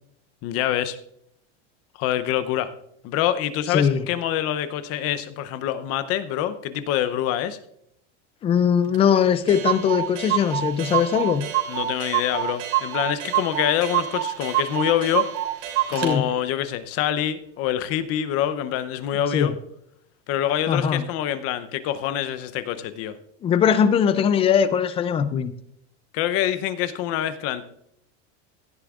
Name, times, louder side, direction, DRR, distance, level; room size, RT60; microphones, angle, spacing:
voice 1, 0.4-1.0 2.0-2.7 3.0-7.6 11.7-15.3 15.9-19.5 20.3-23.2 26.1-27.6, left 11 dB, 40° left, 0.7 m, -25 dB
voice 2, 3.7-4.0 8.4-11.5 16.0-16.3 19.1-19.5 20.7-21.0 23.4-25.5, left 7 dB, 15° left, 0.4 m, -20 dB
Clock, 8.9-9.0 9.2-9.3 9.5-16.1, right 13 dB, 75° right, 3.2 m, -26 dB
16.5 x 11.5 x 2.4 m
supercardioid pair, 145°, 37 cm